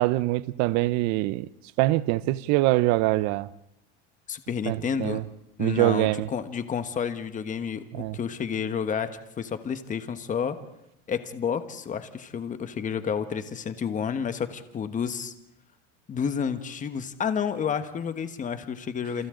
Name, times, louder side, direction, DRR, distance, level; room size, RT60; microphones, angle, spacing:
voice 1, 0.0-1.5 1.8-3.5 4.7-5.2 5.6-6.3 8.0-8.2, right 18 dB, 60° right, 0.8 m, -24 dB
voice 2, 4.3-5.2 5.6-10.6 11.1-15.3 16.1-19.3, left 7 dB, 25° left, 1.4 m, -30 dB
30.0 x 28.0 x 3.8 m
supercardioid pair, 130°, 31 cm